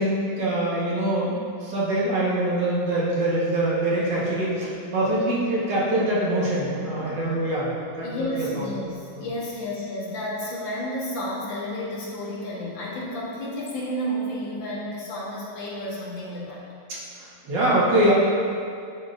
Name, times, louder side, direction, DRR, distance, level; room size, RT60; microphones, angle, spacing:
voice 1, 0.0-7.7 8.0-8.7 9.1-9.3 16.9-18.1, right 1 dB, 70° right, -7 dB, 2.1 m, -24 dB
voice 2, 8.0-16.6, equal, 80° left, -6 dB, 2.1 m, -31 dB
10.0 x 4.7 x 2.6 m, 2.4 s
omnidirectional pair, 2.0 m